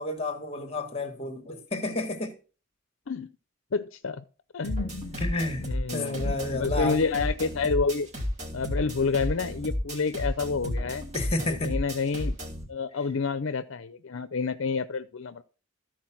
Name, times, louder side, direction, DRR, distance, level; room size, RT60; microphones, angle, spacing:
voice 1, 0.0-2.3 5.2-7.0 11.1-11.7, left 2 dB, 30° left, 1.6 m, -31 dB
voice 2, 3.7-4.2 4.5-5.2 5.6-8.1 8.5-11.0 11.5-12.4 12.7-15.4, left 4 dB, 70° left, 0.6 m, -29 dB
sound 1, 4.6-12.6, left 1 dB, 30° right, 3.0 m, -32 dB
14.0 x 4.6 x 5.9 m
head